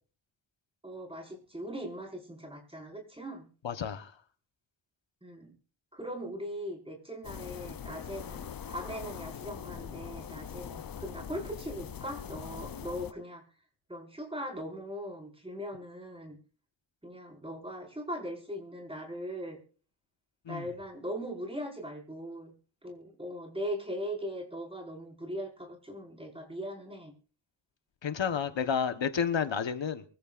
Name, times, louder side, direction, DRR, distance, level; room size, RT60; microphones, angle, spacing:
voice 1, 0.8-3.5 5.2-5.5 5.9-13.4 13.9-16.4 17.0-19.6 20.5-22.5 22.8-27.1, equal, 10° right, 5.2 m, -40 dB
voice 2, 3.6-4.1 20.5-20.7 28.0-30.0, left 7 dB, 65° left, 1.2 m, -30 dB
sound 1, 7.2-13.1, left 8 dB, 45° left, 0.6 m, -42 dB
24.0 x 14.5 x 2.5 m
wide cardioid pair, 120°, 49 cm